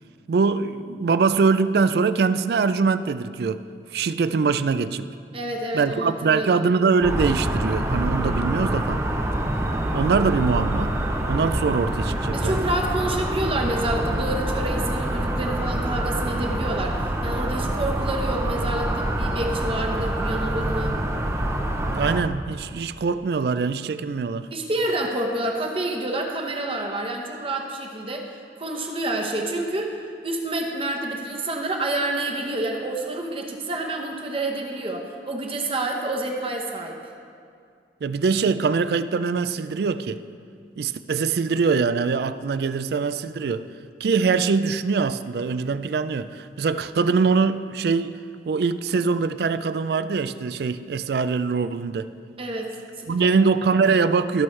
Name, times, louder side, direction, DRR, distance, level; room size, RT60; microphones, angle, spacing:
voice 1, 0.3-3.6 3.9-5.1 5.7-9.0 9.9-10.9 11.3-12.6 21.9-24.5 38.0-40.2 40.8-43.7 44.0-48.1 48.5-52.1 53.1-54.4, right 5 dB, 60° right, 13 dB, 0.3 m, -23 dB
voice 2, 5.3-6.7 12.3-20.9 24.5-28.2 28.6-30.0 30.2-37.0 52.4-53.3, right 2 dB, 30° right, 1 dB, 1.0 m, -28 dB
sound 1, 7.0-22.2, right 1 dB, 15° right, 0.6 m, -26 dB
17.5 x 6.2 x 3.2 m, 2.3 s
head